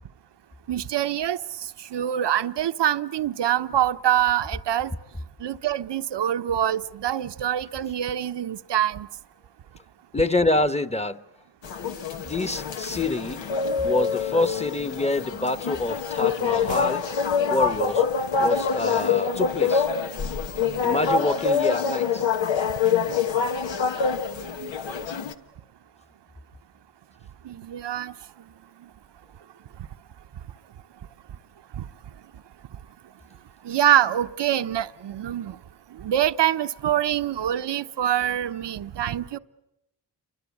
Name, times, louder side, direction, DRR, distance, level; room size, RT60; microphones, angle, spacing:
voice 1, 0.7-1.4 1.9-4.9 5.4-9.1 24.6-24.7 27.4-28.1 31.8-31.9 33.6-35.6 36.0-39.4, right 11 dB, 70° right, 0.9 m, -25 dB
voice 2, 10.1-11.2 12.1-13.4 13.8-17.0 17.4-18.0 18.4-19.9 20.8-22.2, left 2 dB, 15° left, 1.2 m, -26 dB
sound 1, 11.6-25.3, left 6 dB, 85° left, 1.5 m, -25 dB
29.0 x 24.0 x 8.5 m
cardioid pair, 70°, 44 cm